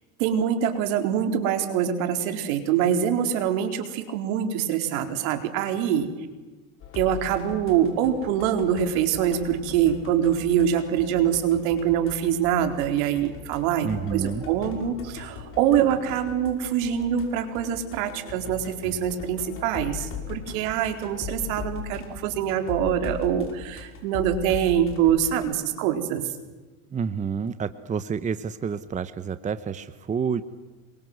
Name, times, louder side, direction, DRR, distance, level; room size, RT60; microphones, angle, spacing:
voice 1, 0.2-6.1 6.9-26.3, right 9 dB, 70° right, 6 dB, 4.4 m, -24 dB
sound 1, 6.8-25.5, left 6 dB, 30° left, 6.0 m, -39 dB
voice 2, 13.8-14.4 26.9-30.4, right 6 dB, 20° right, 13 dB, 1.0 m, -29 dB
27.5 x 23.5 x 8.0 m, 1.3 s
supercardioid pair, 130°, 42 cm